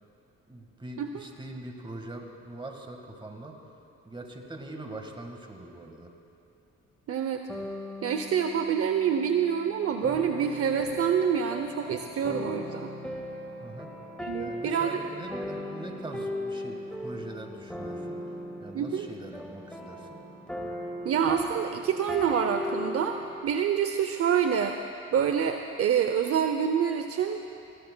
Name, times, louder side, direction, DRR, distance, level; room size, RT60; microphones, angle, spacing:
voice 1, 0.5-3.6 4.0-6.1 13.6-13.9 14.4-18.3 18.6-20.3, right 1 dB, 15° right, 3 dB, 1.6 m, -42 dB
voice 2, 7.1-7.4 8.0-12.9 14.2-15.0 18.7-19.1 21.0-23.2 23.4-24.8 25.1-27.4, right 8 dB, 50° right, 6 dB, 0.6 m, -27 dB
sound 1, 7.5-23.4, left 1 dB, 5° left, 1.6 m, -37 dB
19.5 x 16.5 x 2.2 m, 2.6 s
cardioid pair, 90°, 30 cm